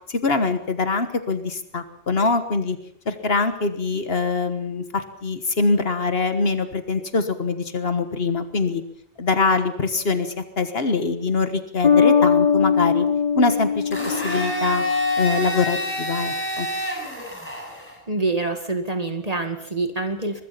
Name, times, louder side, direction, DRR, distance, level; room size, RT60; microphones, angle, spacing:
voice 1, 0.1-2.8 3.0-8.8 9.2-13.1 13.4-14.8 15.2-16.7, left 4 dB, 75° left, 9 dB, 1.7 m, -23 dB
Bass guitar, 11.8-15.4, left 6 dB, 45° left, 1.2 m, -20 dB
Domestic sounds home sounds, 13.9-17.9, left 1 dB, 10° left, 7.5 m, -27 dB
voice 2, 18.1-20.4, right 3 dB, 40° right, 7 dB, 1.8 m, -26 dB
23.0 x 21.0 x 5.8 m, 0.66 s
omnidirectional pair, 1.0 m